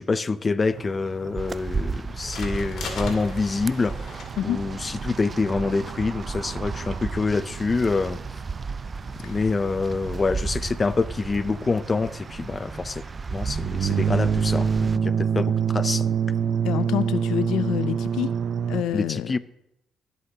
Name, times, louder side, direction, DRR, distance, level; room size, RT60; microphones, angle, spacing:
voice 1, 0.0-8.2 9.2-13.0 13.3-16.1 18.9-19.4, left 4 dB, 30° left, 0.5 m, -26 dB
sound 1, 0.7-7.5, left 4 dB, 70° left, 2.3 m, -43 dB
sound 2, 0.7-18.8, right 7 dB, 55° right, 0.7 m, -29 dB
sound 3, 1.4-15.0, right 4 dB, 30° right, 0.3 m, -34 dB
voice 2, 16.6-18.3 18.7-19.4, left 11 dB, 90° left, 0.4 m, -27 dB
23.0 x 8.1 x 2.8 m
cardioid pair, 90°, 0 cm